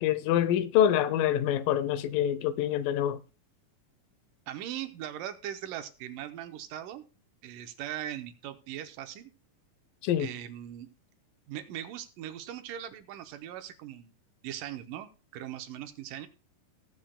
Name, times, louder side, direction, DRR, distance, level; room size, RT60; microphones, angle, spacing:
voice 1, 0.0-3.2 10.0-10.3, left 10 dB, 90° left, 2.4 m, -26 dB
voice 2, 4.5-7.0 7.4-9.3 10.2-10.9 11.5-14.1 14.4-16.3, right 11 dB, 80° right, 2.4 m, -40 dB
18.5 x 7.9 x 2.3 m
omnidirectional pair, 3.9 m